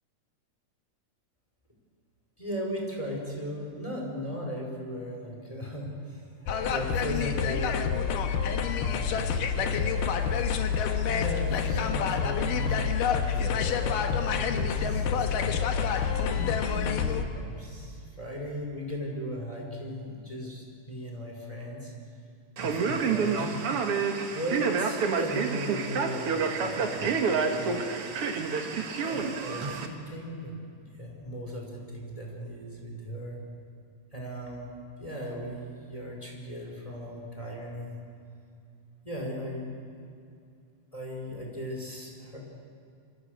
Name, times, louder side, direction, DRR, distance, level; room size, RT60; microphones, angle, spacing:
voice 1, 2.4-6.2 6.6-8.2 8.8-9.6 11.0-21.9 22.6-23.8 24.3-27.3 27.5-27.8 29.0-33.4 34.1-34.7 35.0-38.0 39.0-39.7 40.9-42.4, equal, 10° left, -1 dB, 4.8 m, -37 dB
sound 1, 6.5-17.3, left 7 dB, 85° left, 3.0 m, -27 dB
Male speech man speaking, 22.6-29.9, right 5 dB, 50° right, 2.2 m, -28 dB
27.0 x 25.5 x 6.6 m, 2.5 s
omnidirectional pair, 3.8 m